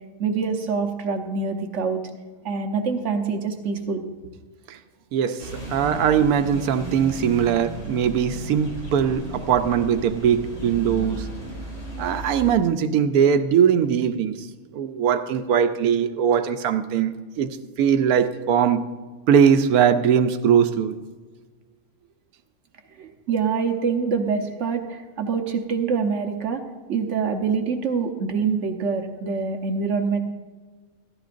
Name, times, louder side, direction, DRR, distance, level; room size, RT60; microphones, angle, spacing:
voice 1, 0.2-2.0 2.4-4.1 23.0-26.6 26.9-30.2, right 5 dB, 55° right, 4 dB, 1.2 m, -25 dB
voice 2, 5.1-11.3 12.0-14.5 14.7-17.5 17.8-18.8 19.3-20.9, right 8 dB, 85° right, 10 dB, 1.1 m, -20 dB
sound 1, 5.4-12.5, equal, 55° left, 2.5 m, -35 dB
14.0 x 12.5 x 2.5 m, 1.4 s
omnidirectional pair, 1.6 m